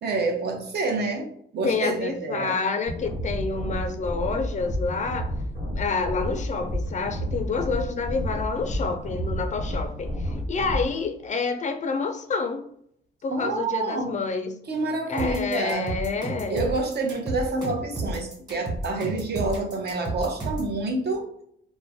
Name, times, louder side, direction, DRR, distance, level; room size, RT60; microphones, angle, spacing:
voice 1, 0.0-1.3 1.5-2.6 13.3-14.1 14.7-15.9 16.5-21.3, right 3 dB, 55° right, 3 dB, 0.7 m, -28 dB
voice 2, 1.6-5.4 5.7-12.6 13.2-14.5 15.1-16.6, left 4 dB, 40° left, 7 dB, 0.4 m, -28 dB
sound 1, 2.9-10.9, equal, 85° right, 1.3 m, -30 dB
sound 2, 15.2-20.7, right 2 dB, 20° right, 1.3 m, -32 dB
2.3 x 2.1 x 3.3 m, 0.68 s
cardioid pair, 90°, 20 cm